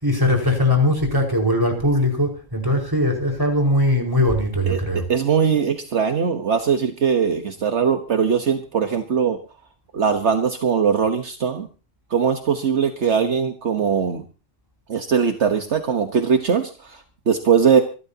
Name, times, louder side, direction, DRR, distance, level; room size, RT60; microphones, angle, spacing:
voice 1, 0.0-5.0, left 1 dB, 15° right, 1 dB, 5.0 m, -20 dB
voice 2, 5.1-9.4 9.9-11.7 12.1-14.2 14.9-17.8, right 6 dB, 65° right, 7 dB, 1.5 m, -20 dB
26.0 x 13.0 x 2.9 m, 0.34 s
omnidirectional pair, 1.3 m